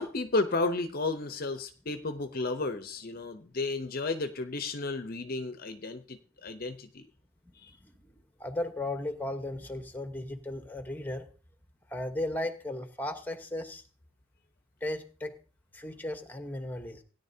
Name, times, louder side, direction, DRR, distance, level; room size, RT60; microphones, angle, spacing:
voice 1, 0.0-7.1 7.6-7.7, left 3 dB, 45° left, 9 dB, 0.7 m, -33 dB
voice 2, 7.8-8.1 8.4-11.3 11.9-13.8 14.8-15.3 15.7-17.0, left 1 dB, 10° left, 7 dB, 1.0 m, -36 dB
16.5 x 10.0 x 2.7 m, 0.37 s
head